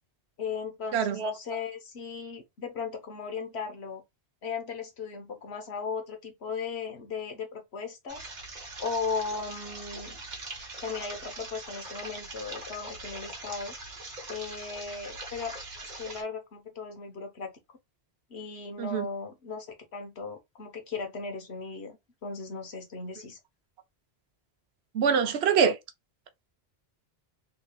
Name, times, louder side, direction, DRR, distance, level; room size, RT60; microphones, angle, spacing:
voice 1, 0.4-4.0 4.4-8.2 8.8-10.2 10.8-13.7 14.3-15.6 16.0-17.5 18.3-19.7 19.9-23.4, left 5 dB, 90° left, 1.4 m, -37 dB
voice 2, 0.9-1.3 18.8-19.0 24.9-25.8, right 6 dB, 90° right, 1.0 m, -24 dB
sound 1, 8.1-16.2, right 2 dB, 45° right, 1.3 m, -42 dB
3.8 x 3.3 x 2.3 m
omnidirectional pair, 1.1 m